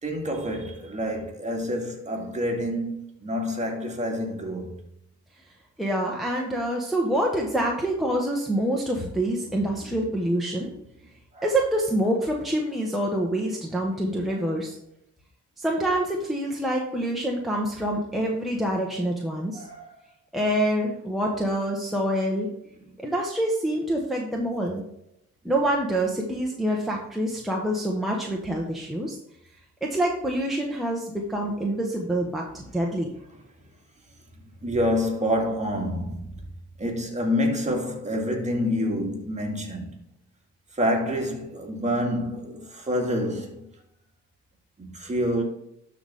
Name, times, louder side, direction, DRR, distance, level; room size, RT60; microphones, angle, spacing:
voice 1, 0.0-4.7 9.5-9.6 10.7-10.8 11.3-11.5 19.5-19.9 34.6-36.4 36.8-40.0 40.7-43.7 44.8-45.4, equal, 25° right, 2.0 m, -27 dB
voice 2, 5.8-10.7 11.4-14.8 15.6-19.6 20.3-22.5 23.0-24.8 25.4-29.2 29.8-33.1, right 1 dB, ahead, 1.2 m, -26 dB
12.0 x 4.2 x 3.5 m
cardioid pair, 90°, 30 cm